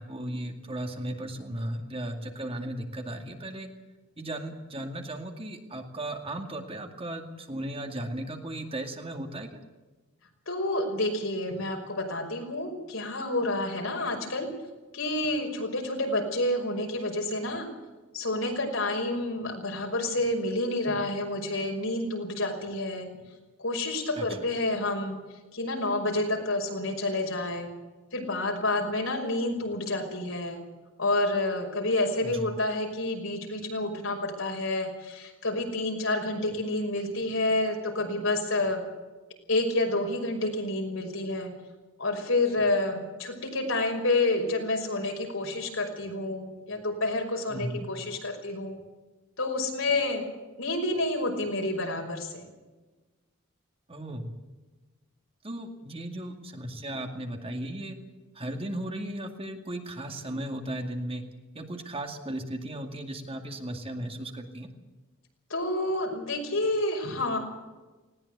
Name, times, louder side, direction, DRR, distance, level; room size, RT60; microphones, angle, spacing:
voice 1, 0.0-3.7 4.2-9.5 24.2-24.3 32.2-32.5 47.5-47.9 53.9-54.3 55.4-58.0 58.3-61.2 61.5-64.7, right 1 dB, 25° right, 4 dB, 2.2 m, -36 dB
voice 2, 10.5-14.5 14.9-17.7 18.1-23.1 23.6-25.2 25.5-27.7 28.1-30.6 31.0-38.8 39.5-41.5 42.0-48.8 49.4-50.2 50.6-52.5 65.5-67.4, left 2 dB, 70° left, 2 dB, 5.7 m, -29 dB
20.0 x 18.0 x 8.1 m, 1.2 s
head